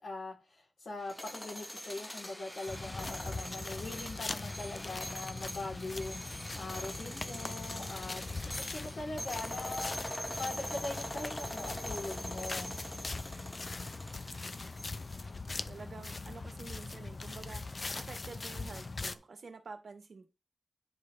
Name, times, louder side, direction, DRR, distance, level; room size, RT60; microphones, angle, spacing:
voice 1, 0.0-10.0 10.4-12.8, left 2 dB, 75° left, 3.2 m, -42 dB
sound 1, 1.0-15.1, equal, 10° left, 0.7 m, -43 dB
sound 2, 2.7-19.2, left 3 dB, 50° left, 0.6 m, -41 dB
voice 2, 15.7-17.6 18.0-20.3, right 4 dB, 75° right, 1.6 m, -48 dB
10.0 x 4.9 x 3.2 m
wide cardioid pair, 65°, 0 cm